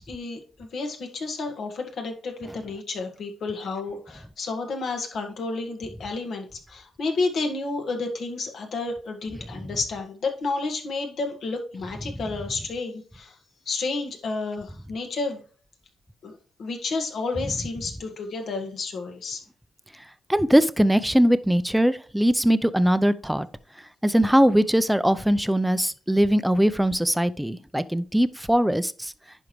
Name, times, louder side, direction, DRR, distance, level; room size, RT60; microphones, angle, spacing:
voice 1, 0.1-13.4 13.7-15.4 16.2-19.4, left 3 dB, 70° left, 1.8 m, -31 dB
voice 2, 20.3-23.5 24.0-29.1, equal, 5° right, 0.6 m, -21 dB
10.5 x 4.7 x 3.2 m
supercardioid pair, 60°, 0 cm